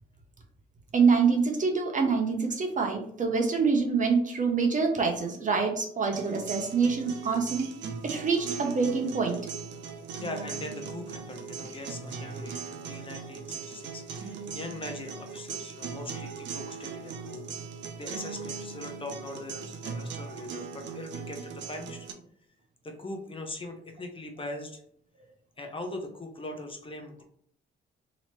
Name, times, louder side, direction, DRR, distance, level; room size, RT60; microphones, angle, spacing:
voice 1, 0.9-7.7 8.0-9.4, right 5 dB, 40° right, 3 dB, 0.9 m, -26 dB
sound 1, 6.1-22.1, right 5 dB, 65° right, 0.7 m, -39 dB
voice 2, 10.2-17.5 18.0-22.1 22.8-24.8 25.6-27.2, left 2 dB, 25° left, 3 dB, 0.8 m, -41 dB
3.0 x 2.8 x 4.4 m, 0.65 s
cardioid pair, 90°, 20 cm